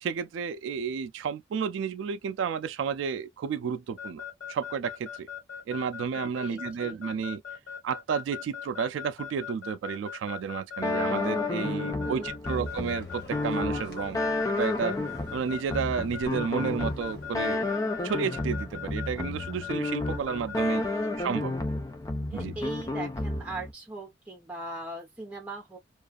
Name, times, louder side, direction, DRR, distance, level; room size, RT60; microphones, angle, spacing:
voice 1, 0.0-4.2 4.5-5.3 5.7-7.4 7.8-14.2 14.5-15.0 15.3-17.7 18.0-20.8 21.2-21.6 22.3-22.5, right 6 dB, 85° right, 0.3 m, -31 dB
Keyboard (musical) / Alarm, 4.0-20.6, left 8 dB, 75° left, 1.2 m, -39 dB
voice 2, 6.4-7.0 11.6-12.7 22.3-25.8, right 2 dB, 5° right, 0.9 m, -40 dB
sound 1, 10.8-23.7, left 2 dB, 20° left, 0.3 m, -31 dB
sound 2, 12.4-17.6, left 1 dB, 60° left, 1.0 m, -48 dB
2.4 x 2.4 x 2.4 m
head